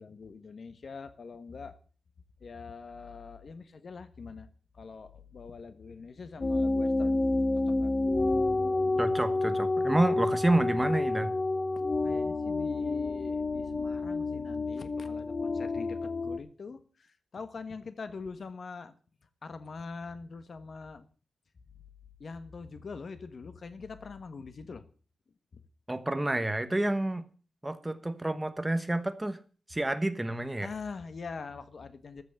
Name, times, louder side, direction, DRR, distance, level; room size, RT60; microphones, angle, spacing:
voice 1, 0.0-1.8 2.4-4.5 4.7-7.2 7.7-7.9 11.7-18.9 19.4-21.1 22.2-24.8 25.5-25.6 30.6-32.2, left 4 dB, 50° left, 11 dB, 1.4 m, -43 dB
sound 1, 6.4-16.4, left 2 dB, 30° left, 0.9 m, -29 dB
voice 2, 9.0-11.3 25.9-27.2 27.6-29.4 29.7-30.7, right 1 dB, 10° right, 10 dB, 1.2 m, -29 dB
14.0 x 6.2 x 8.7 m, 0.41 s
wide cardioid pair, 145°, 0 cm